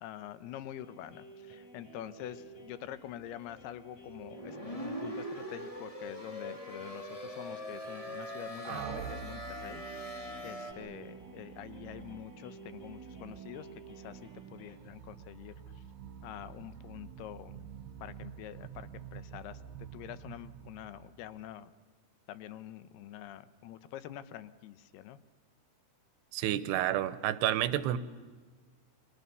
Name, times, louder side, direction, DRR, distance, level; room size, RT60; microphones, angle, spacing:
voice 1, 0.0-9.8 10.2-15.8 16.2-17.6 18.0-19.6 19.9-21.7 22.3-25.2, left 11 dB, 80° left, 13 dB, 2.8 m, -46 dB
sound 1, 0.8-14.8, right 2 dB, 40° left, 5.6 m, -53 dB
sound 2, 4.1-10.7, equal, 15° left, 1.1 m, -42 dB
sound 3, 8.7-21.5, right 8 dB, 70° right, 2.6 m, -47 dB
voice 2, 26.3-28.0, right 12 dB, 85° right, 14 dB, 3.0 m, -29 dB
29.5 x 23.0 x 6.9 m, 1.4 s
omnidirectional pair, 4.7 m